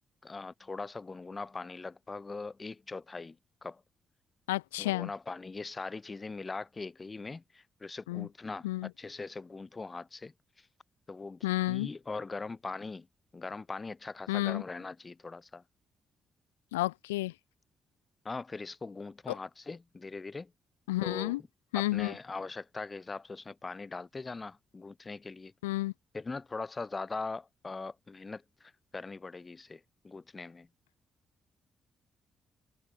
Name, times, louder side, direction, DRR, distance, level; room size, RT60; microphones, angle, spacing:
voice 1, 0.2-3.4 3.6-3.8 4.8-10.3 11.1-13.1 13.3-15.6 18.2-20.5 21.0-21.4 21.7-25.5 26.1-30.7, left 3 dB, 35° left, 3.7 m, -41 dB
voice 2, 4.5-5.1 8.1-8.3 8.6-8.9 11.4-11.9 14.3-14.6 16.7-17.3 19.3-19.4 20.9-21.4 21.7-22.2 25.6-25.9, left 18 dB, 90° left, 0.5 m, -31 dB
hypercardioid pair, 45°, 0 cm